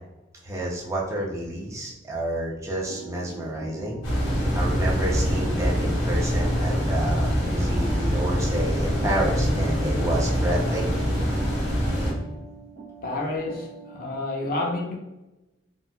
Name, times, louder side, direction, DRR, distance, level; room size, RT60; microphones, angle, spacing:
voice 1, 0.4-4.0 4.5-11.1, right 1 dB, 15° right, -4 dB, 0.5 m, -29 dB
sound 1, 2.9-14.2, right 3 dB, 75° right, 0.9 m, -44 dB
sound 2, 4.0-12.1, equal, 90° left, 1.5 m, -24 dB
voice 2, 13.0-15.0, left 2 dB, 50° left, 0 dB, 0.6 m, -29 dB
3.9 x 2.1 x 2.2 m, 1.0 s
head